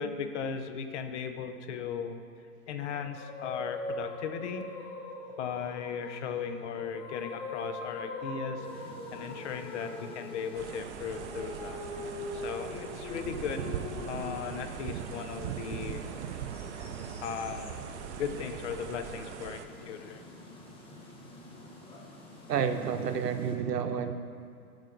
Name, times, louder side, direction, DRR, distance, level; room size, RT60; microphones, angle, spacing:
voice 1, 0.0-2.2 2.7-4.7 5.4-13.8 14.1-16.4 17.2-20.2, left 7 dB, 45° left, 7 dB, 0.9 m, -37 dB
sound 1, 2.9-14.7, left 2 dB, 30° left, 1.3 m, -42 dB
sound 2, 8.6-23.6, left 1 dB, 10° left, 1.1 m, -49 dB
sound 3, 10.5-19.7, right 9 dB, 50° right, 0.6 m, -40 dB
voice 2, 22.5-24.1, right 7 dB, 85° right, 8 dB, 0.9 m, -30 dB
15.5 x 5.5 x 3.9 m, 2.3 s
hypercardioid pair, 130°, 47 cm